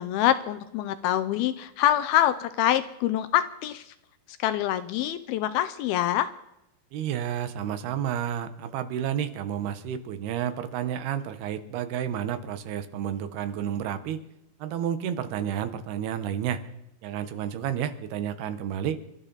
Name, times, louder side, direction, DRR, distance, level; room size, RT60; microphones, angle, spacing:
voice 1, 0.0-3.9 4.4-6.3, left 12 dB, 80° left, 11 dB, 2.5 m, -25 dB
voice 2, 6.9-14.2 14.6-16.6 17.0-19.0, right 9 dB, 90° right, 10 dB, 3.1 m, -31 dB
27.5 x 13.0 x 4.0 m, 0.86 s
omnidirectional pair, 4.4 m